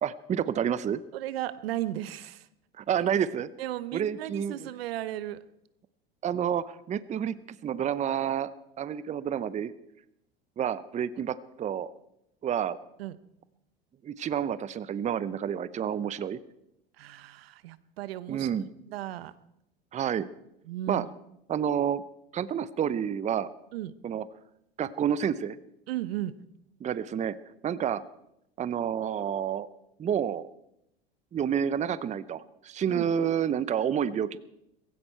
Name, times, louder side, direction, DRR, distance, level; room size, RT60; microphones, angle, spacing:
voice 1, 0.0-1.0 2.8-3.5 3.9-4.7 6.2-7.4 7.6-8.5 8.8-9.7 10.6-11.9 12.4-12.8 14.0-16.4 18.3-18.7 19.9-20.3 20.9-21.0 21.5-22.0 22.3-23.5 24.0-24.2 24.8-25.6 26.8-27.4 27.6-28.0 28.6-29.7 30.0-30.5 31.3-34.4, right 8 dB, 25° right, 17 dB, 0.6 m, -29 dB
voice 2, 1.1-2.5 3.6-5.4 13.0-13.2 17.0-18.5 18.9-19.3 20.7-21.1 23.7-23.9 25.9-26.4 32.9-33.1, right 14 dB, 75° right, 16 dB, 0.9 m, -35 dB
17.0 x 16.0 x 4.4 m, 0.82 s
hypercardioid pair, 90°, 30 cm